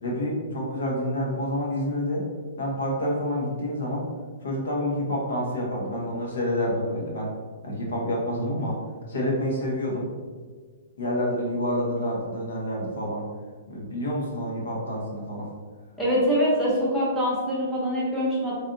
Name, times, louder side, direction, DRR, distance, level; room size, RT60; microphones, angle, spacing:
voice 1, 0.0-2.3 2.6-4.1 4.4-7.3 7.6-8.8 9.1-10.1 11.0-13.3 13.7-15.5, equal, 80° left, -2 dB, 1.0 m, -28 dB
voice 2, 16.0-18.5, equal, ahead, -8 dB, 0.6 m, -24 dB
3.3 x 2.7 x 2.5 m, 1.5 s
hypercardioid pair, 180°, 0 cm